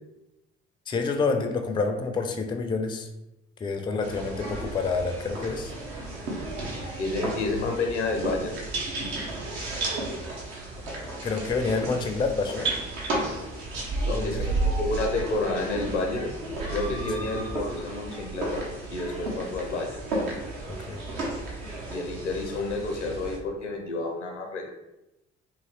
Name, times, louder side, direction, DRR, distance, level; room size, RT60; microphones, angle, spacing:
voice 1, 0.9-3.1 3.6-5.7 11.2-12.7 13.8-13.9 14.1-14.5 17.2-17.3 20.7-21.0, left 4 dB, 15° left, 6 dB, 0.4 m, -28 dB
sound 1, 4.0-23.4, right 2 dB, 65° right, 0.8 m, -33 dB
voice 2, 7.0-8.5 10.8-11.0 14.0-16.3 16.7-18.6 18.9-20.0 21.9-24.7, left 2 dB, 85° left, 2 dB, 0.6 m, -30 dB
2.8 x 2.7 x 3.1 m, 0.92 s
figure-of-eight pair, 45°, 34 cm